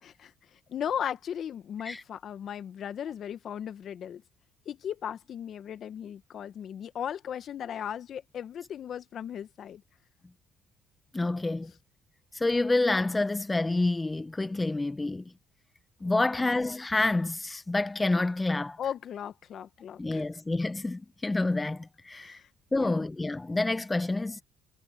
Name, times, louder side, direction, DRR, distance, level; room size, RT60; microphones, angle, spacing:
voice 1, 0.0-4.2 4.6-9.8 16.0-16.5 18.8-20.2 22.1-22.5 22.8-23.0, left 9 dB, 55° left, 1.6 m, -37 dB
voice 2, 11.1-11.7 12.3-15.2 16.0-18.8 20.0-22.4 22.7-24.4, left 2 dB, 15° left, 1.4 m, -28 dB
supercardioid pair, 80°, 0 cm